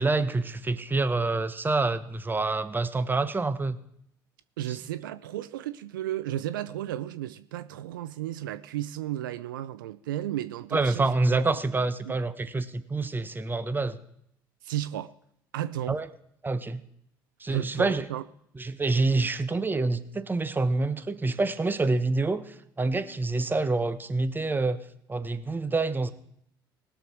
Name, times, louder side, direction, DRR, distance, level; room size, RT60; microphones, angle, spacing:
voice 1, 0.0-3.8 4.7-4.8 10.7-14.0 15.9-16.1 16.4-16.8 17.4-18.1 18.6-24.8 25.1-26.1, right 3 dB, 20° right, 1.0 m, -27 dB
voice 2, 4.6-11.1 12.1-12.2 14.6-15.1 15.5-16.0 17.5-18.2 19.1-19.2, right 12 dB, 80° right, 0.5 m, -33 dB
20.0 x 6.9 x 4.6 m
hypercardioid pair, 60°, 11 cm